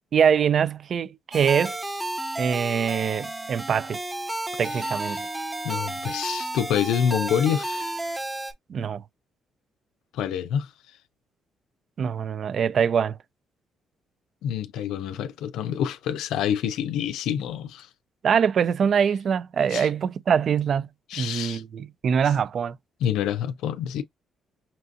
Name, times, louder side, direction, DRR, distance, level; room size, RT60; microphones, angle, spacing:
voice 1, 0.1-1.8 2.4-4.0 4.6-5.3 8.7-9.0 12.0-13.1 18.2-20.9 21.2-22.7, right 7 dB, 55° right, 0.3 m, -23 dB
sound 1, 1.3-8.5, right 2 dB, 20° right, 0.8 m, -32 dB
voice 2, 4.7-5.3 5.6-8.0 10.1-10.7 14.4-17.9 19.7-19.9 21.1-21.6 22.2-22.3 23.0-24.0, left 9 dB, 90° left, 0.4 m, -27 dB
5.6 x 2.5 x 2.5 m
cardioid pair, 90°, 0 cm